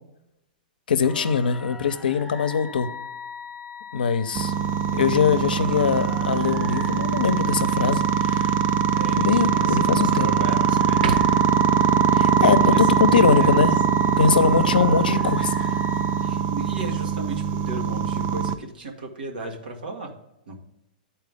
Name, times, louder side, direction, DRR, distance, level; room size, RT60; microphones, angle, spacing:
voice 1, 0.9-2.9 3.9-4.5 4.9-8.5 9.1-10.3 12.1-13.7 14.2-15.5, left 6 dB, 90° left, 10 dB, 0.7 m, -22 dB
sound 1, 1.0-16.3, left 5 dB, ahead, 0.7 m, -40 dB
sound 2, 4.3-18.6, right 8 dB, 35° right, 0.4 m, -22 dB
sound 3, 7.9-8.4 8.9-9.0 9.6-10.4 10.9-11.7 15.1-16.5 17.9-18.4, right 4 dB, 70° right, 0.7 m, -36 dB
voice 2, 8.9-11.4 12.6-13.6 16.2-20.2 20.5-20.6, right 2 dB, 90° right, 2 dB, 1.6 m, -35 dB
10.5 x 4.5 x 3.5 m, 0.88 s
hypercardioid pair, 135°, 5 cm